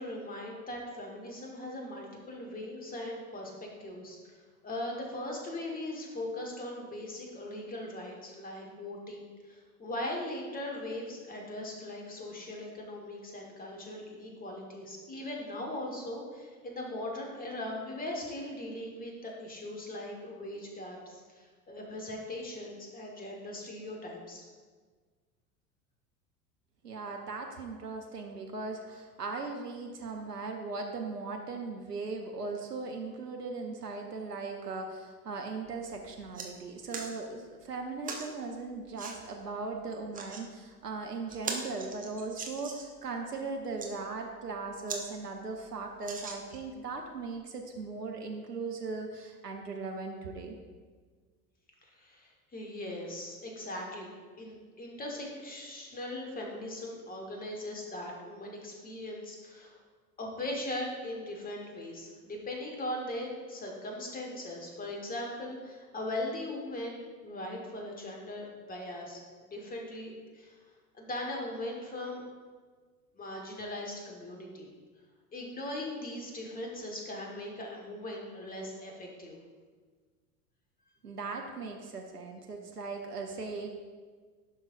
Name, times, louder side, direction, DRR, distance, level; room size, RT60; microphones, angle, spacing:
voice 1, 0.0-24.4 51.8-59.8 60.2-70.5 70.9-72.2 73.1-74.7 75.3-79.4, left 1 dB, 20° left, 0 dB, 1.6 m, -39 dB
voice 2, 26.8-50.5 81.0-83.7, right 3 dB, 85° right, 2 dB, 0.8 m, -38 dB
sound 1, 35.7-35.8 36.1-36.5 36.9-37.1 38.0-38.3 39.0-39.2 39.9-40.4 40.9-41.0 41.3-43.0 43.6-43.9 44.5-44.6 44.9-45.0 45.4-45.5 46.0-46.7 47.4-47.5, right 4 dB, 20° right, 0.9 m, -40 dB
11.5 x 5.4 x 2.6 m, 1.5 s
figure-of-eight pair, 80°, 46 cm